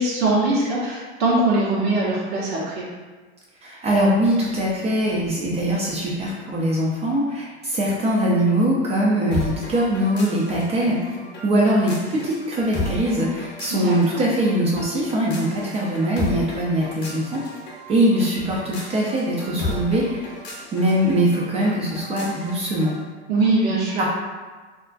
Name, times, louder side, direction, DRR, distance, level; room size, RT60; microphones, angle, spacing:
voice 1, 0.0-2.9 13.7-14.0 23.3-24.0, right 2 dB, 65° right, -6 dB, 0.8 m, -21 dB
voice 2, 3.6-11.0 11.4-17.4 17.9-20.3 20.7-22.9 24.0-24.1, right 1 dB, 20° right, -4 dB, 0.3 m, -22 dB
sound 1, 9.3-23.0, left 2 dB, 30° left, 0.8 m, -35 dB
2.4 x 2.1 x 2.4 m, 1.4 s
hypercardioid pair, 100°, 35 cm